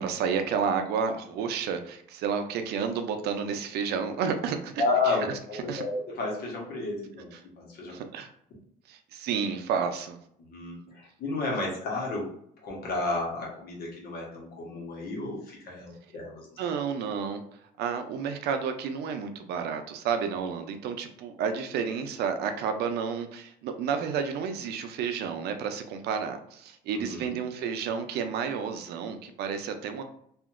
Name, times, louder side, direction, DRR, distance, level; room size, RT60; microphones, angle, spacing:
voice 1, 0.0-5.2 5.7-5.8 7.9-8.3 8.9-10.2 16.6-17.4 17.8-30.0, right 6 dB, 75° right, 7 dB, 0.5 m, -31 dB
voice 2, 4.8-7.3 7.6-8.0 10.4-12.3 12.6-16.5 26.9-27.4, left 3 dB, 65° left, -2 dB, 1.1 m, -32 dB
2.8 x 2.5 x 2.4 m, 0.69 s
cardioid pair, 110°, 17 cm